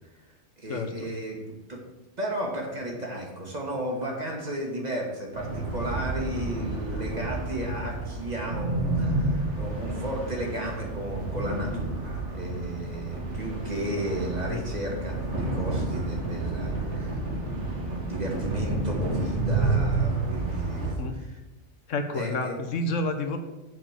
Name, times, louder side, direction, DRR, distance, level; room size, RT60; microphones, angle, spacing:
voice 1, 0.6-1.4 1.7-1.8 2.2-21.3 22.1-22.6, right 1 dB, 35° right, -1 dB, 1.8 m, -34 dB
sound 1, 5.3-21.0, right 2 dB, 70° right, 1.9 m, -30 dB
voice 2, 20.8-21.1 21.9-23.4, left 2 dB, 85° left, 6 dB, 1.3 m, -29 dB
7.7 x 5.1 x 7.3 m, 1.1 s
omnidirectional pair, 1.3 m